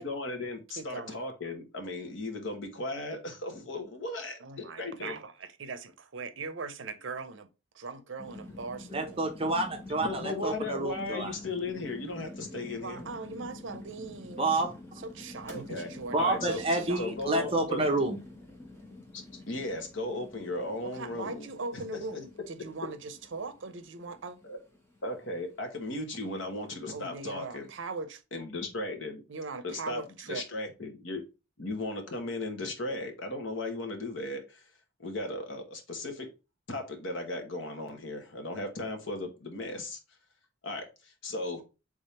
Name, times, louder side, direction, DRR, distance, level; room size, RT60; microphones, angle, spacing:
voice 1, 0.0-5.2 9.6-9.7 10.0-13.1 15.5-15.9 16.2-16.6 17.0-17.8 19.1-21.8 24.4-24.6 25.0-27.7 28.3-29.2 29.6-30.0 30.3-31.2 31.6-34.6 35.0-36.3 36.7-40.0 40.6-41.6, left 2 dB, 70° left, 1.2 m, -36 dB
voice 2, 0.7-1.2 4.4-7.5 7.7-9.2 10.3-10.6 12.5-14.4 15.0-17.1 20.8-24.4 26.9-28.2 29.3-30.4, right 4 dB, 70° right, 0.6 m, -40 dB
sound 1, 8.2-28.0, left 2 dB, 15° left, 1.0 m, -48 dB
voice 3, 8.9-11.3 14.4-14.7 16.1-18.2, right 2 dB, 30° right, 0.8 m, -29 dB
3.5 x 3.5 x 4.2 m
head